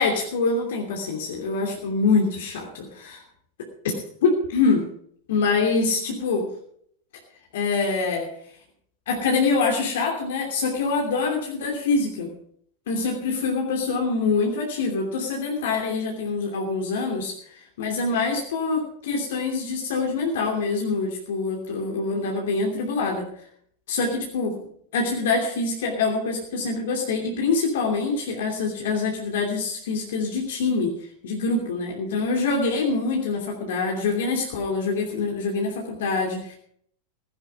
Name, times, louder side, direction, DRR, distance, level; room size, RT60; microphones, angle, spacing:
voice 1, 0.0-3.2 3.8-4.8 5.3-6.5 7.5-8.3 9.1-12.3 12.9-17.3 17.8-23.3 23.9-24.7 24.9-30.9 31.2-36.6, left 4 dB, 55° left, 1 dB, 2.8 m, -25 dB
16.5 x 10.5 x 5.2 m, 0.65 s
figure-of-eight pair, 90°, 0 cm